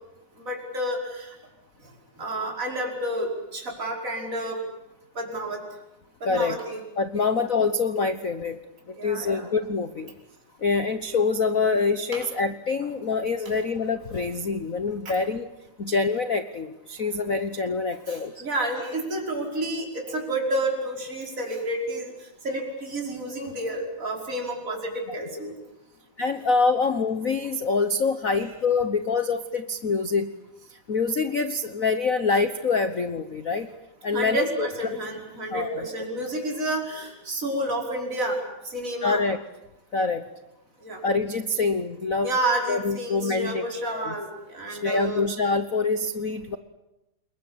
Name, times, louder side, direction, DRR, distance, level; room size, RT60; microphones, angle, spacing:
voice 1, 0.4-1.3 2.2-4.6 5.2-5.6 6.2-6.8 7.1-7.2 8.9-9.5 12.1-12.3 18.1-25.5 28.3-28.5 34.1-38.4 38.6-39.2 40.8-41.0 42.2-45.2, right 1 dB, 25° right, 0 dB, 5.7 m, -30 dB
voice 2, 6.2-6.6 7.0-8.6 8.9-10.1 10.6-15.5 15.8-18.4 26.2-30.3 30.7-33.7 34.0-34.7 35.5-35.8 39.0-39.4 39.9-40.3 41.0-42.3 42.7-44.1 44.7-46.6, left 4 dB, 90° left, 10 dB, 0.7 m, -25 dB
29.0 x 21.5 x 8.7 m, 0.94 s
omnidirectional pair, 3.3 m